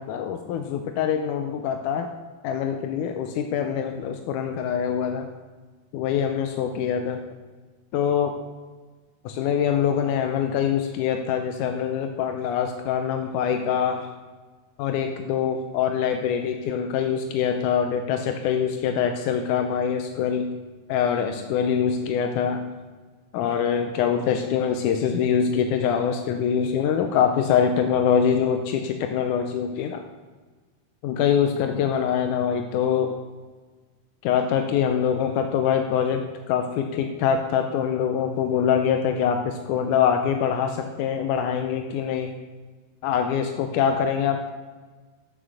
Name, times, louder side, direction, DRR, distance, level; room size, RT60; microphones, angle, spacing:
voice 1, 0.0-2.1 2.4-5.3 5.9-7.2 7.9-8.3 9.3-14.1 14.8-20.5 20.9-22.7 23.3-30.0 31.0-33.2 34.2-42.3 43.0-44.5, left 8 dB, 80° left, 5 dB, 1.8 m, -24 dB
9.5 x 6.0 x 6.4 m, 1.4 s
omnidirectional pair, 4.2 m